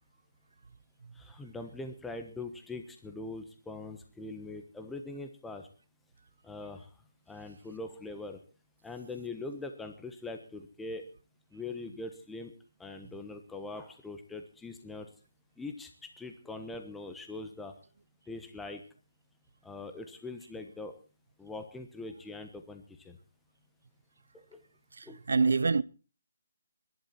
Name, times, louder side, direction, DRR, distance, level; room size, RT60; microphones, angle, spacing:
voice 1, 1.2-5.7 6.4-6.9 7.3-8.4 8.8-11.0 11.5-12.5 12.8-15.1 15.6-17.7 18.3-18.8 19.6-21.0 21.4-23.2 24.5-24.6 25.1-25.2, left 2 dB, 5° left, 1.2 m, -42 dB
voice 2, 25.0-25.8, right 4 dB, 75° right, 0.7 m, -26 dB
22.5 x 11.5 x 4.3 m
hypercardioid pair, 165°, 0 cm